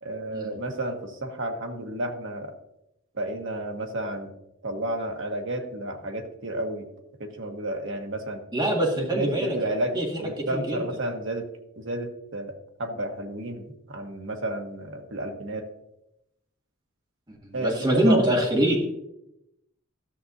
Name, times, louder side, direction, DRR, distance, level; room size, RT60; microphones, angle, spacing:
voice 1, 0.0-2.5 3.1-4.3 4.6-6.9 7.2-8.4 9.0-11.5 11.8-12.5 12.8-15.7 17.5-17.8 18.1-18.3, right 1 dB, 65° right, 4 dB, 1.2 m, -31 dB
voice 2, 8.5-9.6 9.9-10.2 10.5-10.8 17.3-18.8, right 1 dB, 20° right, -2 dB, 2.1 m, -24 dB
13.5 x 6.8 x 2.7 m, 0.85 s
head